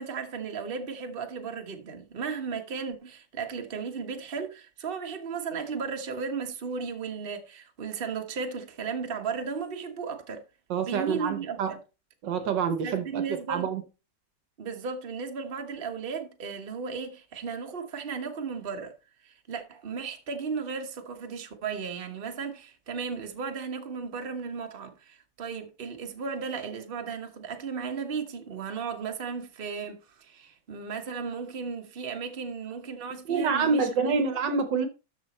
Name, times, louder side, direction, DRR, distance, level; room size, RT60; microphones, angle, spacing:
voice 1, 0.0-10.4 10.8-11.8 12.8-13.7 14.6-18.9 19.2-34.2, right 5 dB, 30° right, 1.4 m, -35 dB
voice 2, 10.7-11.7 12.2-13.8 33.3-34.9, right 5 dB, 65° right, 1.6 m, -27 dB
13.0 x 5.1 x 4.3 m
omnidirectional pair, 2.2 m